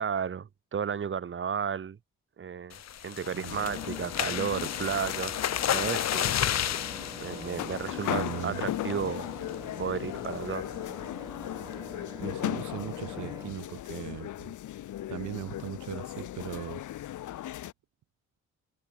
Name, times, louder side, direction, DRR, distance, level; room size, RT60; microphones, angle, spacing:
voice 1, 0.0-2.0 2.4-5.4 5.7-6.3 7.2-9.3 9.8-10.7, right 7 dB, 40° right, 2.1 m, -33 dB
sound 1, 2.7-8.5 8.9-9.2 9.5-9.6 10.0-10.3, left 11 dB, 60° left, 1.5 m, -32 dB
sound 2, 3.4-17.7, left 13 dB, 80° left, 4.4 m, -37 dB
Engine, 3.6-13.5, right 2 dB, 15° right, 4.0 m, -46 dB
voice 2, 8.1-8.7 12.2-14.5 15.1-16.8, right 14 dB, 75° right, 1.8 m, -39 dB
cardioid pair, 90°, 30 cm